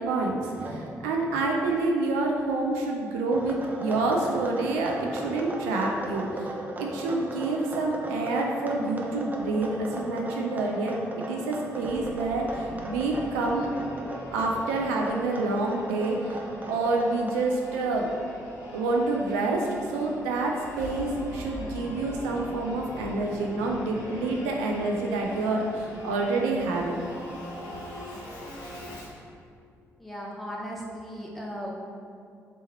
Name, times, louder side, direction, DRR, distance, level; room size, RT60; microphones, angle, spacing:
voice 1, 0.0-6.5 6.8-13.7 14.3-18.1 18.7-27.0, right 2 dB, 70° right, 0 dB, 0.4 m, -28 dB
sound 1, 0.5-0.9 3.3-17.3, right 1 dB, 20° right, 0.6 m, -38 dB
Singing / Musical instrument, 11.9-29.2, left 1 dB, 70° left, 0.9 m, -42 dB
voice 2, 30.0-31.7, equal, ahead, -3 dB, 0.9 m, -37 dB
3.4 x 3.0 x 4.1 m, 2.4 s
figure-of-eight pair, 40°, 8 cm